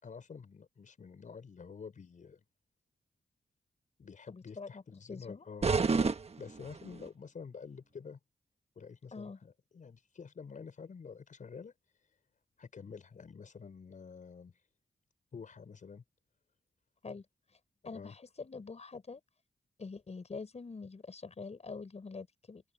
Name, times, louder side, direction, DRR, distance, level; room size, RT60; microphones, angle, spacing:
voice 1, 0.0-2.4 4.0-5.7 6.4-8.2 8.8-11.7 12.6-14.5 15.3-16.0 17.9-18.2, left 5 dB, 65° left, 5.5 m, -48 dB
voice 2, 4.3-5.4 9.1-9.4 17.0-17.2 17.8-19.2 19.8-22.6, left 4 dB, 50° left, 6.0 m, -45 dB
sound 1, 5.6-7.1, right 4 dB, 50° right, 1.3 m, -30 dB
open air
cardioid pair, 55°, 14 cm